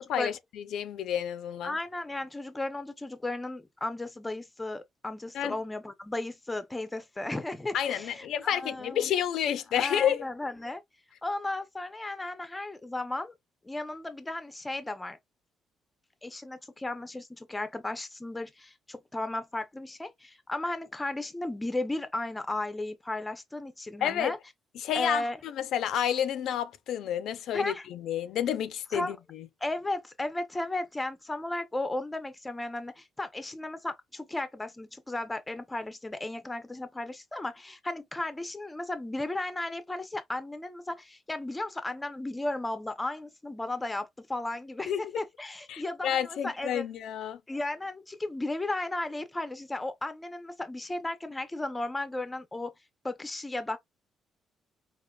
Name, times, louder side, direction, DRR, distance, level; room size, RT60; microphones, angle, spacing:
voice 1, 0.0-1.8 5.3-5.5 7.7-10.3 24.0-24.3 24.8-29.5 44.9-45.1 45.7-47.4, left 10 dB, 65° left, 0.5 m, -30 dB
voice 2, 1.6-9.1 9.7-10.8 11.2-13.3 13.6-15.2 16.2-24.4 24.9-25.4 27.5-27.9 28.9-29.2 29.6-46.8 47.5-52.7 53.0-53.8, left 2 dB, 10° left, 0.6 m, -35 dB
5.0 x 2.5 x 2.3 m
cardioid pair, 165°, 0 cm